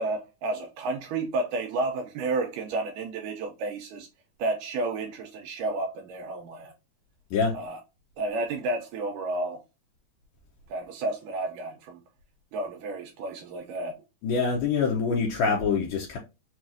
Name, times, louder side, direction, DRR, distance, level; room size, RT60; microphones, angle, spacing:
voice 1, 0.0-4.1 4.4-6.7 7.5-7.8 8.2-9.6 10.7-12.0 12.5-14.0, right 2 dB, 80° right, 2.0 m, -31 dB
voice 2, 14.2-16.2, left 5 dB, 75° left, 2.1 m, -25 dB
5.9 x 2.4 x 2.5 m
omnidirectional pair, 4.2 m